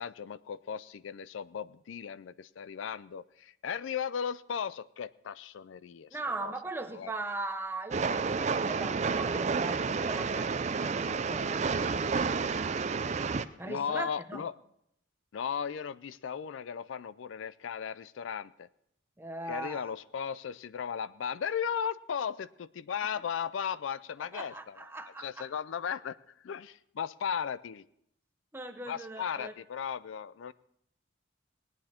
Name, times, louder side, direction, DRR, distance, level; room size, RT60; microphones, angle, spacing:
voice 1, 0.0-6.1 6.4-6.5 6.9-7.1 13.7-14.5 15.3-18.7 19.5-24.8 25.2-26.2 26.4-27.8 28.9-30.5, left 7 dB, 75° left, 17 dB, 0.4 m, -36 dB
voice 2, 6.1-12.3 13.6-14.5 19.2-19.9 24.2-25.5 28.5-29.5, right 2 dB, 10° right, 5 dB, 0.8 m, -40 dB
Train, 7.9-13.4, right 5 dB, 35° right, 0.4 m, -30 dB
18.5 x 9.7 x 4.3 m, 0.73 s
head